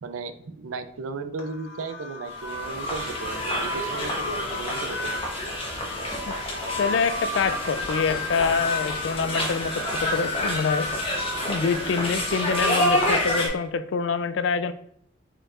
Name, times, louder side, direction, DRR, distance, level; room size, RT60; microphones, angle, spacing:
voice 1, 0.0-5.2, right 4 dB, 85° right, 11 dB, 0.5 m, -35 dB
sound 1, 1.4-13.5, left 2 dB, 90° left, 1.2 m, -39 dB
sound 2, 2.3-13.5, left 1 dB, 30° left, 1.0 m, -28 dB
voice 2, 6.8-10.9 11.5-14.7, left 5 dB, 60° left, 12 dB, 0.3 m, -26 dB
4.7 x 4.5 x 2.4 m, 0.69 s
head